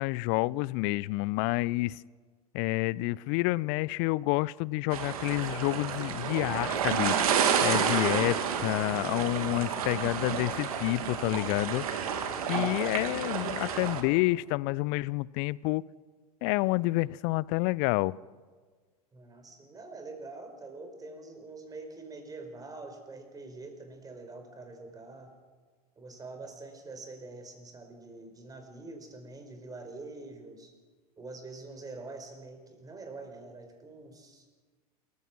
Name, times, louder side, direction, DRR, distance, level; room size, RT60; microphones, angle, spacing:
voice 1, 0.0-2.0 2.5-7.2 7.6-11.8 12.5-15.8 16.4-18.2, left 21 dB, 45° left, 23 dB, 0.5 m, -29 dB
sound 1, 4.9-14.0, right 7 dB, 65° right, 2.4 m, -30 dB
voice 2, 19.1-25.3 26.0-30.7 31.2-34.4, right 3 dB, 20° right, 5 dB, 4.7 m, -45 dB
28.0 x 15.0 x 6.2 m, 1.5 s
figure-of-eight pair, 90°, 20 cm